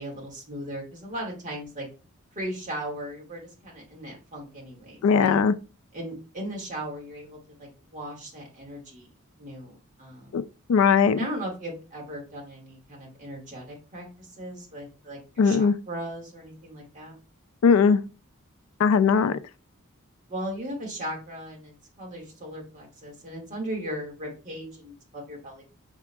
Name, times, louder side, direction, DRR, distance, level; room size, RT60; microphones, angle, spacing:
voice 1, 0.0-1.9 2.3-5.4 5.9-9.1 9.4-10.4 11.1-17.1 20.3-25.6, right 1 dB, 35° right, 2.0 m, -37 dB
voice 2, 5.0-5.5 10.3-10.4 10.7-11.2 15.4-15.7 17.6-18.0 18.8-19.4, left 6 dB, 70° left, 0.4 m, -19 dB
5.9 x 3.6 x 2.3 m
head